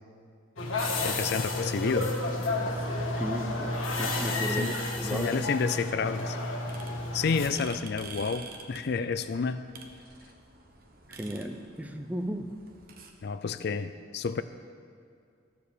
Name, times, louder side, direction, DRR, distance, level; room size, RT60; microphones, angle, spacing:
sound 1, 0.6-7.5, left 2 dB, 80° left, 1.6 m, -31 dB
voice 1, 1.0-2.1 4.6-6.4 7.1-9.7 13.2-14.4, left 5 dB, 50° left, 12 dB, 0.4 m, -30 dB
voice 2, 3.2-3.7 4.0-5.4 11.1-12.5, equal, 5° right, 6 dB, 0.6 m, -35 dB
sound 2, 6.7-13.1, right 3 dB, 45° right, 1.0 m, -48 dB
14.5 x 7.0 x 6.7 m, 2.3 s
head